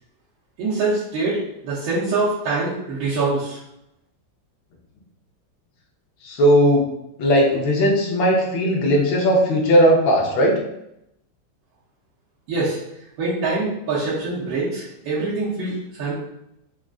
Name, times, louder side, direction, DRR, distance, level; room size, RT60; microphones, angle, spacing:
voice 1, 0.6-3.6 12.5-12.8 13.2-16.1, right 3 dB, 90° right, -9 dB, 1.6 m, -24 dB
voice 2, 6.2-6.8 7.2-10.6, equal, 80° left, -2 dB, 1.6 m, -17 dB
4.9 x 2.4 x 2.3 m, 0.83 s
omnidirectional pair, 2.1 m